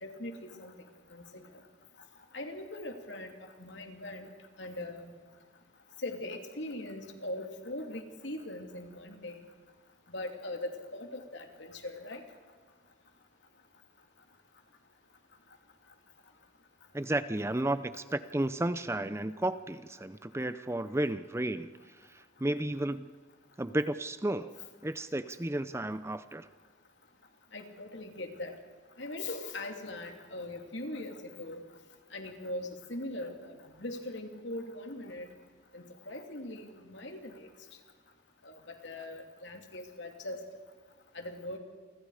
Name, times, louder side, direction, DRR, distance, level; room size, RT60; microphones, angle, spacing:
voice 1, 0.0-0.7 1.1-1.4 2.3-3.3 3.6-4.3 4.6-5.1 6.0-9.4 10.1-12.2 27.5-28.5 29.0-31.6 32.1-35.3 35.7-37.3 38.4-40.4 41.1-41.6, left 1 dB, 75° left, 4 dB, 2.9 m, -40 dB
voice 2, 16.9-23.1 23.6-24.5 24.8-26.5, right 1 dB, 15° right, 12 dB, 0.6 m, -33 dB
29.0 x 25.0 x 5.0 m, 1.5 s
head